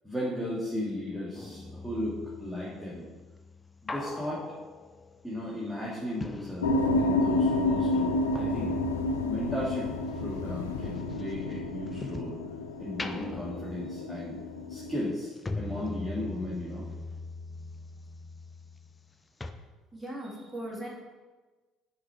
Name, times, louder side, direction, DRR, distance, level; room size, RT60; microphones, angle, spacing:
voice 1, 0.0-3.1 3.8-4.5 5.2-8.8 9.3-9.9 10.2-12.4 12.8-14.4 14.7-15.3 15.5-16.9, left 1 dB, ahead, -7 dB, 1.6 m, -35 dB
sound 1, 1.3-7.3 7.6-12.4 12.8-19.1 19.4-19.5, left 3 dB, 20° left, 0.5 m, -42 dB
sound 2, 6.6-15.0, left 2 dB, 75° left, 0.4 m, -30 dB
voice 2, 19.9-20.9, right 1 dB, 15° right, -2 dB, 1.9 m, -38 dB
6.6 x 4.7 x 4.5 m, 1.3 s
figure-of-eight pair, 55°, 0 cm